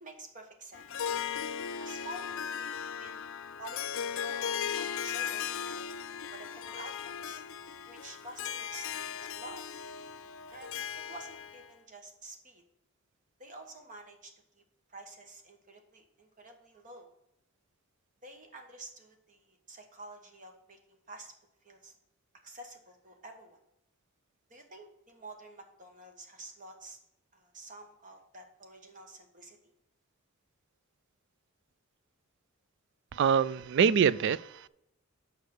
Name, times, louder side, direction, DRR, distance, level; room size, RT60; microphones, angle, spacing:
voice 1, 0.0-1.1 1.8-3.2 3.5-4.5 4.7-5.9 6.3-7.4 7.9-9.6 10.5-10.8 11.1-12.6 13.4-14.6 14.9-17.1 18.2-21.3 21.6-21.9 22.4-23.6 24.5-27.0 27.3-29.7, right 2 dB, 35° right, 4 dB, 1.3 m, -49 dB
Harp, 0.7-11.7, left 8 dB, 60° left, 0.4 m, -37 dB
voice 2, 33.1-34.7, right 7 dB, 55° right, 18 dB, 0.3 m, -25 dB
6.5 x 5.2 x 6.6 m, 0.82 s
head